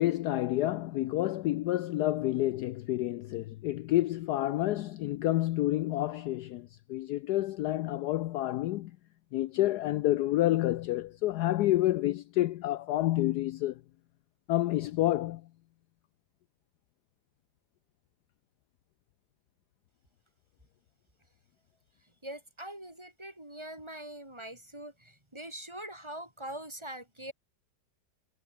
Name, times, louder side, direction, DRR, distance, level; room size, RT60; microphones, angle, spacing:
voice 1, 0.0-8.9 9.3-13.8 14.5-15.4, left 15 dB, 70° left, 1.0 m, -29 dB
voice 2, 22.2-27.3, right 1 dB, 15° right, 3.6 m, -43 dB
omnidirectional pair, 2.0 m